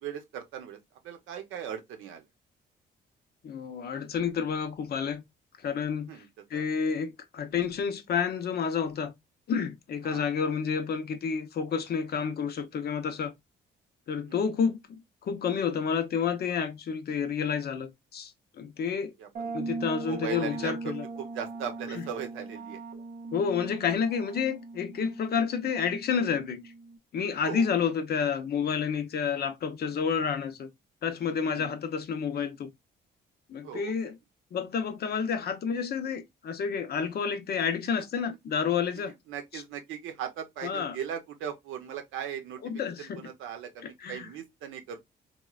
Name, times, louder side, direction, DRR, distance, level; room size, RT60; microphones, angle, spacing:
voice 1, 0.0-0.8 1.0-2.2 6.1-6.3 6.5-6.6 10.0-10.3 14.3-14.5 19.2-19.5 20.0-22.8 27.4-27.7 31.5-31.8 33.6-33.9 39.0-45.0, right 8 dB, 90° right, 0.7 m, -39 dB
voice 2, 3.4-5.2 5.6-6.1 6.5-9.1 9.5-13.3 14.1-18.3 18.6-19.1 19.5-21.0 23.3-26.7 27.1-30.7 31.0-32.7 33.5-34.1 34.5-39.1 39.5-39.6 40.6-41.0 42.6-43.3 43.8-44.3, left 6 dB, 50° left, 0.6 m, -30 dB
sound 1, 19.3-27.0, right 3 dB, 45° right, 0.5 m, -40 dB
3.1 x 2.1 x 2.3 m
cardioid pair, 90°, 20 cm